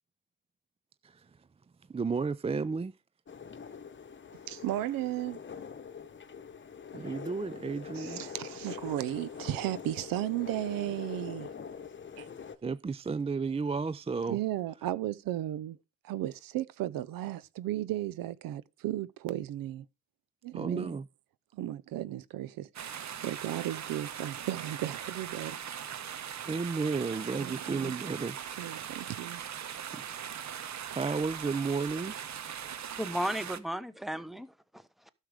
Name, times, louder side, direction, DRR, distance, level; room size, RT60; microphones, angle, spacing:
voice 1, 1.9-2.9 6.9-8.2 12.6-14.4 20.5-21.0 26.5-28.4 30.9-32.1, right 4 dB, 20° right, 0.4 m, -32 dB
sound 1, 3.3-12.6, left 6 dB, 35° left, 1.0 m, -44 dB
voice 2, 4.5-5.4 7.9-11.5 12.2-12.3 14.3-15.8 16.0-19.9 20.4-21.0 21.5-25.6 27.4-28.2 28.6-29.4, right 14 dB, 80° right, 0.7 m, -35 dB
sound 2, 22.7-33.6, right 9 dB, 55° right, 1.0 m, -40 dB
voice 3, 33.0-35.1, equal, ahead, 1.0 m, -35 dB
11.5 x 6.5 x 4.9 m
supercardioid pair, 65°, 34 cm